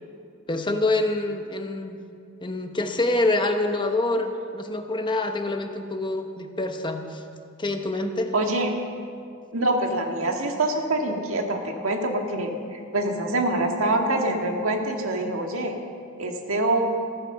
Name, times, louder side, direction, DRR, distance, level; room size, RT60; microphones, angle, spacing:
voice 1, 0.5-2.0 2.4-7.2 7.6-8.3, left 2 dB, 20° left, 5 dB, 1.0 m, -26 dB
voice 2, 8.3-8.7 9.5-15.8 16.2-16.8, right 1 dB, 70° right, 2 dB, 1.9 m, -25 dB
14.5 x 14.0 x 6.7 m, 2.3 s
head